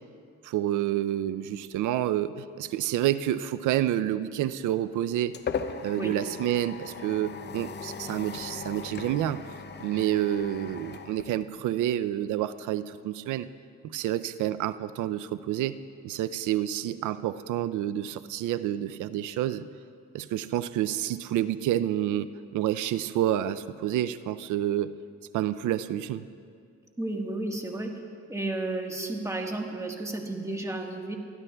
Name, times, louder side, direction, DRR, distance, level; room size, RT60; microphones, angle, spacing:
voice 1, 0.4-5.3 5.8-9.4 9.8-13.5 13.8-15.8 16.0-19.7 20.1-24.9 25.3-26.3, right 12 dB, 80° right, 14 dB, 0.5 m, -29 dB
sound 1, 4.6-12.0, left 6 dB, 35° left, 0.6 m, -39 dB
voice 2, 27.0-27.9 28.3-31.1, right 2 dB, 10° right, 2 dB, 1.4 m, -32 dB
23.0 x 12.0 x 2.3 m, 2.3 s
cardioid pair, 90°, 30 cm